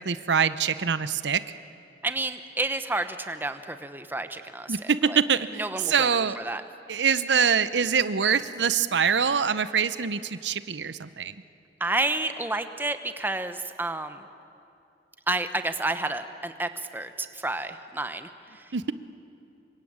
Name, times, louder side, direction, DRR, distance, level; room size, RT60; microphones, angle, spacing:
voice 1, 0.0-1.4 4.7-6.4 6.9-11.3 18.7-18.8, right 6 dB, 85° right, 14 dB, 0.8 m, -24 dB
voice 2, 2.0-5.2 5.6-6.1 6.4-6.6 11.8-14.2 15.3-18.3, right 2 dB, 10° right, 9 dB, 1.0 m, -30 dB
26.5 x 23.5 x 8.8 m, 2.6 s
head